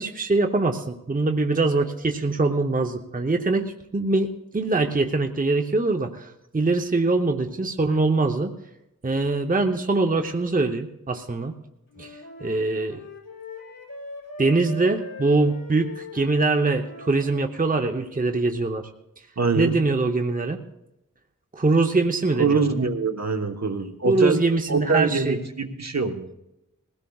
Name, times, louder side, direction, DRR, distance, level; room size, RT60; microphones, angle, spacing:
voice 1, 0.0-8.5 9.0-11.5 12.0-13.0 14.4-18.9 19.6-20.6 21.5-22.7 24.1-25.4, right 3 dB, 25° right, 5 dB, 0.8 m, -23 dB
Wind instrument woodwind instrument, 11.9-17.6, left 3 dB, 75° left, 3.7 m, -41 dB
voice 2, 19.4-19.7 22.4-24.4 24.7-26.3, right 4 dB, 55° right, 5 dB, 1.2 m, -24 dB
21.0 x 16.5 x 2.4 m, 0.91 s
wide cardioid pair, 55°, 33 cm